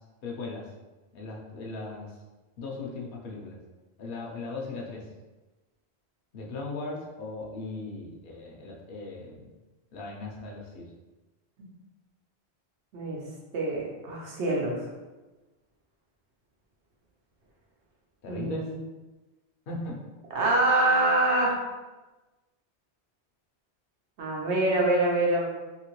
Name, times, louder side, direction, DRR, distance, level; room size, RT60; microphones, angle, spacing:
voice 1, 0.2-0.7 1.1-2.1 2.6-3.6 4.0-5.0 6.3-9.5 9.9-10.9 18.2-18.7 19.7-20.0, left 3 dB, 65° left, -2 dB, 0.7 m, -38 dB
voice 2, 13.5-14.8 18.3-18.7 20.3-21.6 24.2-25.5, right 2 dB, 85° right, -2 dB, 1.1 m, -25 dB
2.8 x 2.8 x 3.0 m, 1.1 s
omnidirectional pair, 1.1 m